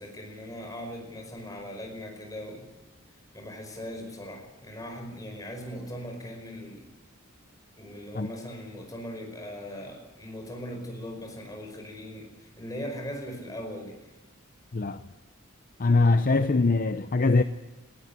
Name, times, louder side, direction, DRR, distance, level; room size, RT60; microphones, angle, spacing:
voice 1, 0.0-2.7 3.3-6.9 7.8-14.1, equal, 20° left, 5.2 m, -39 dB
voice 2, 15.8-17.4, left 3 dB, 40° left, 0.6 m, -22 dB
19.5 x 15.5 x 9.9 m
head